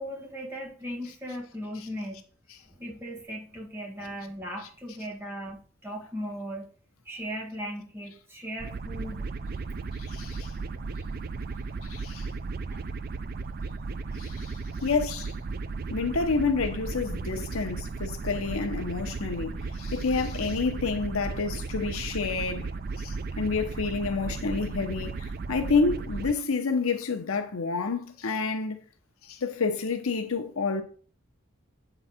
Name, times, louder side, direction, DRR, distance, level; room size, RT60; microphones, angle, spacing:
voice 1, 0.0-2.2 2.7-6.7 7.0-9.2 11.5-11.6 12.7-12.8, equal, 10° right, 1.6 m, -37 dB
sound 1, 8.6-26.3, right 4 dB, 45° right, 0.4 m, -35 dB
voice 2, 10.0-10.5 11.8-12.3 14.2-15.3 15.9-22.7 23.0-28.8 29.2-30.8, left 4 dB, 80° left, 0.8 m, -29 dB
8.1 x 4.0 x 4.2 m
head